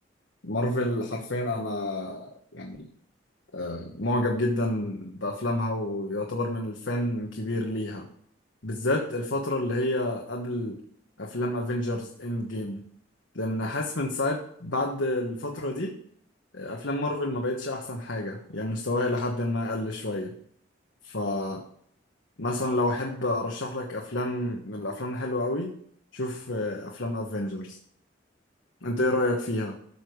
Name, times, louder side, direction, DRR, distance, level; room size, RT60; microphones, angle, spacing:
voice 1, 0.4-2.9 3.5-8.1 8.6-10.8 11.2-12.8 13.3-15.9 16.5-20.3 21.0-21.6 22.4-25.7 26.1-27.8 28.8-29.7, left 1 dB, 80° left, 1 dB, 1.3 m, -29 dB
13.0 x 6.8 x 4.8 m, 0.66 s
head